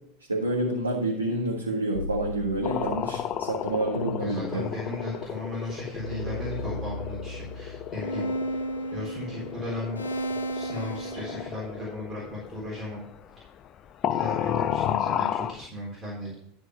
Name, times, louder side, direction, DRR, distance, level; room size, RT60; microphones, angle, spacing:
voice 1, 0.3-4.6, right 1 dB, 85° right, -3 dB, 1.5 m, -28 dB
sound 1, 1.9-3.3 4.0-5.3 6.0-11.5, equal, 80° left, 0.9 m, -35 dB
sound 2, 2.6-13.8 14.0-15.6, left 10 dB, 35° left, 0.5 m, -33 dB
voice 2, 4.2-8.3 8.9-10.0 10.5-13.0 14.0-16.3, left 1 dB, 20° right, -5 dB, 3.8 m, -36 dB
12.5 x 4.5 x 5.7 m, 0.73 s
figure-of-eight pair, 80°, 0 cm